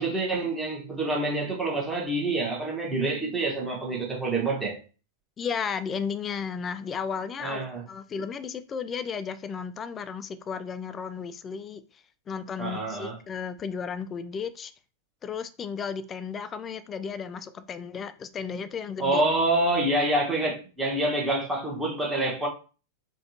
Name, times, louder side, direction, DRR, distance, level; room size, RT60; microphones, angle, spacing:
voice 1, 0.0-4.8 7.4-7.8 12.6-13.2 19.0-22.5, right 2 dB, 10° right, 1.2 m, -27 dB
voice 2, 5.4-7.6 7.9-11.8 12.3-14.7 15.2-19.2, left 6 dB, 25° left, 0.3 m, -34 dB
4.1 x 2.4 x 2.7 m
figure-of-eight pair, 90°, 0 cm